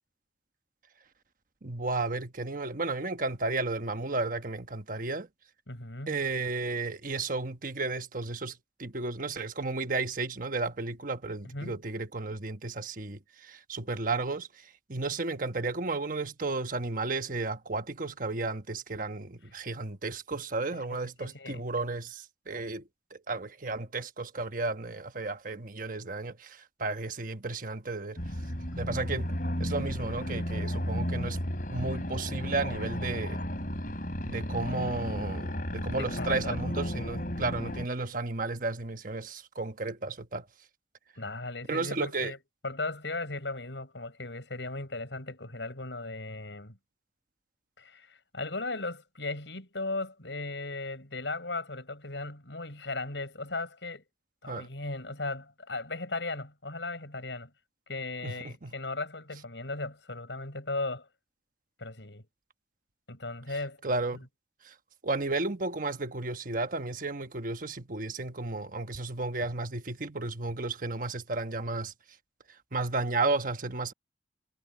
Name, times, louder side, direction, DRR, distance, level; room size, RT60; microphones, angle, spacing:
voice 1, 1.6-5.3 6.1-22.8 23.1-28.2 28.8-29.3 29.6-31.4 31.7-33.4 34.3-40.4 41.7-42.3 54.5-54.7 58.2-58.7 63.8-64.2 64.6-64.7 65.0-71.9 72.7-73.9, right 3 dB, 50° right, 1.2 m, -33 dB
voice 2, 5.7-6.2 11.4-11.7 20.7-21.6 36.0-36.7 41.2-42.4 42.6-46.8 47.8-54.0 54.4-57.5 57.9-61.1 61.8-62.2 63.1-63.8 64.1-64.3, left 2 dB, 85° left, 6.1 m, -37 dB
sound 1, 28.2-37.9, equal, 50° left, 5.7 m, -33 dB
head